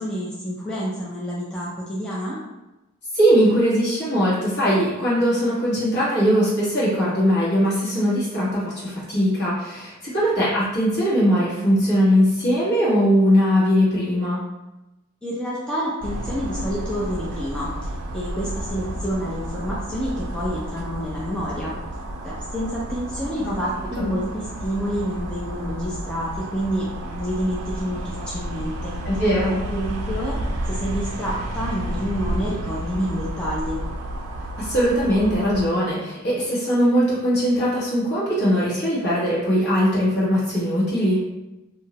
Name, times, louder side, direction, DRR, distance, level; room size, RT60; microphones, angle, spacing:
voice 1, 0.0-2.4 15.2-21.7 22.2-29.0 29.5-30.4 30.7-33.8, equal, 5° left, -8 dB, 0.3 m, -28 dB
voice 2, 3.1-14.4 23.4-23.5 24.0-24.1 29.0-29.6 34.6-41.2, equal, 55° left, -8 dB, 1.1 m, -20 dB
sound 1, 16.0-35.7, right 1 dB, 75° right, 0.4 m, -31 dB
2.6 x 2.0 x 2.8 m, 1.0 s
head